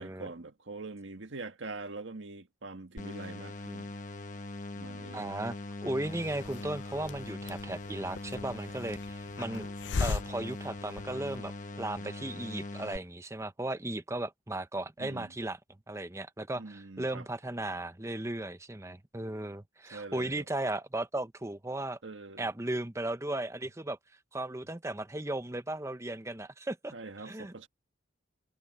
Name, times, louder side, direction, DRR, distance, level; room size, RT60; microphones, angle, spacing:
voice 1, 0.0-4.0 4.7-5.3 15.0-15.3 16.6-17.3 19.9-20.4 22.0-22.5 26.9-27.7, right 3 dB, 90° right, 1.6 m, -44 dB
sound 1, 3.0-13.0, left 2 dB, 45° left, 1.1 m, -41 dB
voice 2, 5.1-5.5 5.8-9.7 10.0-15.6 15.9-22.0 22.4-24.0 24.3-26.9 27.2-27.5, right 1 dB, 15° right, 0.8 m, -36 dB
Hiss, 6.0-11.5, left 4 dB, 75° left, 0.5 m, -39 dB
head